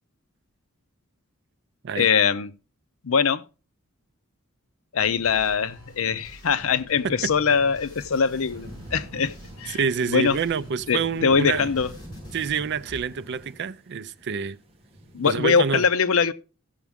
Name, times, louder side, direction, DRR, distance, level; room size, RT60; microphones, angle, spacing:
voice 1, 1.9-2.5 3.0-3.4 4.9-9.8 10.1-10.4 10.9-11.9 15.1-16.3, left 6 dB, 70° left, 0.6 m, -22 dB
sound 1, 5.0-13.0, right 1 dB, 20° left, 6.9 m, -45 dB
sound 2, 8.0-15.5, equal, 25° right, 1.3 m, -46 dB
voice 2, 9.7-11.7 12.3-14.6 15.2-15.8, right 6 dB, 55° right, 0.5 m, -27 dB
15.0 x 7.1 x 3.5 m
head